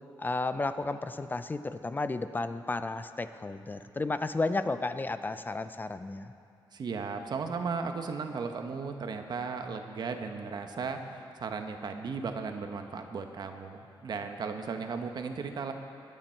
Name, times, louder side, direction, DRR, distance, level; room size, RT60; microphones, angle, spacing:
voice 1, 0.2-6.3, left 3 dB, 20° left, 11 dB, 0.5 m, -33 dB
voice 2, 6.7-15.7, right 5 dB, 55° right, 6 dB, 1.0 m, -36 dB
21.5 x 8.9 x 4.5 m, 2.6 s
cardioid pair, 110°, 8 cm